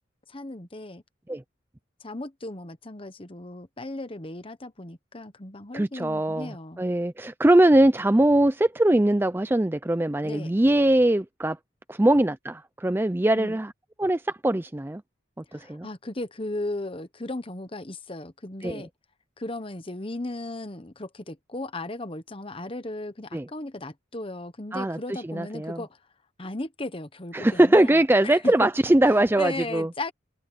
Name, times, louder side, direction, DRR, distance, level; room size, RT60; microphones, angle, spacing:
voice 1, 0.3-1.0 2.0-6.8 10.2-10.5 13.4-13.6 15.5-18.9 19.4-26.0 26.4-28.5 29.4-30.1, left 2 dB, 30° left, 1.1 m, -36 dB
voice 2, 5.7-11.6 11.9-13.7 14.0-15.0 15.5-15.9 18.6-18.9 23.3-23.5 24.7-25.8 27.3-29.9, right 1 dB, 10° right, 0.4 m, -22 dB
head